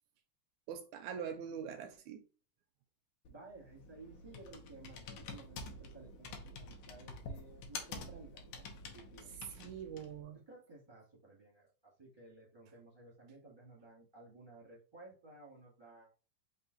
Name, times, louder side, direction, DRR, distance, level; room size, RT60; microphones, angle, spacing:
voice 1, 0.7-2.2 9.5-10.4, right 7 dB, 80° right, 1.7 m, -43 dB
Computer keyboard, 3.2-10.2, left 3 dB, 75° left, 2.1 m, -48 dB
voice 2, 3.3-8.6 8.9-9.3 10.5-16.1, right 3 dB, 20° right, 0.6 m, -56 dB
5.5 x 2.5 x 3.9 m
omnidirectional pair, 3.7 m